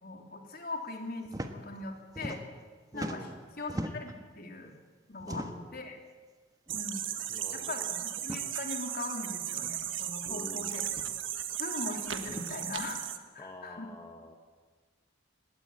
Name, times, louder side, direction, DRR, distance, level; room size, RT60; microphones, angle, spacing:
voice 1, 0.0-2.4 2.9-3.3 3.6-4.7 5.1-5.5 5.7-6.0 6.7-7.0 7.5-10.8 11.6-13.0 13.3-13.9, left 2 dB, 50° left, 3 dB, 3.0 m, -40 dB
sound 1, 1.2-1.5 1.8-2.7 2.9-4.2 5.2-5.7 6.7-6.8 7.2-7.3 8.2-8.4 9.6-9.7 10.9-11.2 12.2-12.5, right 1 dB, 20° right, 1.3 m, -40 dB
voice 2, 2.9-3.5 5.2-5.8 7.3-7.9 10.3-10.9 13.4-14.3, left 1 dB, 20° left, 2 dB, 1.4 m, -47 dB
sound 2, 6.7-13.2, right 11 dB, 80° right, 1.4 m, -36 dB
19.0 x 16.5 x 9.7 m, 1.5 s
head